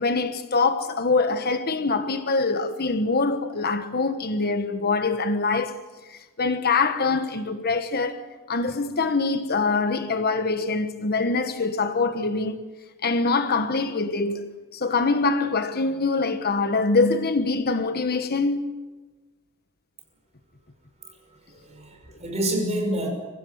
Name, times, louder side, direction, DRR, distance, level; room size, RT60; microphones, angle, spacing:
voice 1, 0.0-5.7 6.1-12.6 13.0-18.8, left 3 dB, 45° left, 1.2 m, -24 dB
voice 2, 21.0-23.1, right 1 dB, 30° right, 5.7 m, -29 dB
24.0 x 15.5 x 9.5 m
head